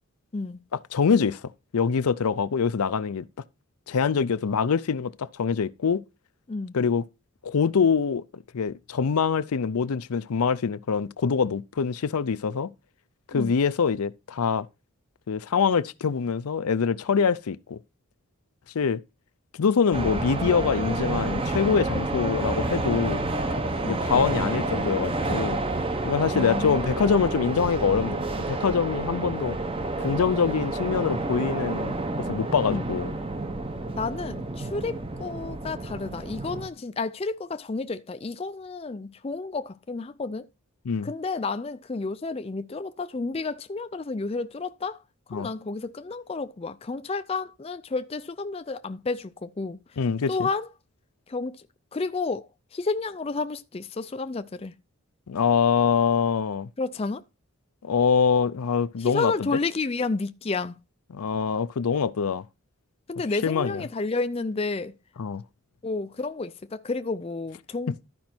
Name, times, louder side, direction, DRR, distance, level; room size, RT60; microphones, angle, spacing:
voice 1, 0.7-1.4 1.7-3.2 3.9-6.0 6.7-7.1 7.4-8.2 8.5-12.7 13.3-14.7 15.3-17.8 18.7-19.0 19.6-23.2 23.9-25.6 26.0-29.6 30.0-31.9 32.3-33.1 40.8-41.1 45.3-45.5 50.0-50.5 55.3-56.7 57.8-59.5 61.1-62.4 63.3-63.8 65.2-65.4 67.9-68.0, left 6 dB, 85° left, 0.5 m, -24 dB
sound 1, 19.9-36.7, right 2 dB, 25° right, 0.7 m, -29 dB
voice 2, 26.3-26.9 27.8-28.0 32.7-32.9 34.0-40.5 41.0-45.0 45.3-49.8 50.3-50.7 51.3-51.6 51.9-52.5 52.7-54.7 56.8-57.2 59.0-60.8 63.1-64.9 65.8-68.1, left 3 dB, 25° left, 0.4 m, -31 dB
12.5 x 5.2 x 4.4 m
head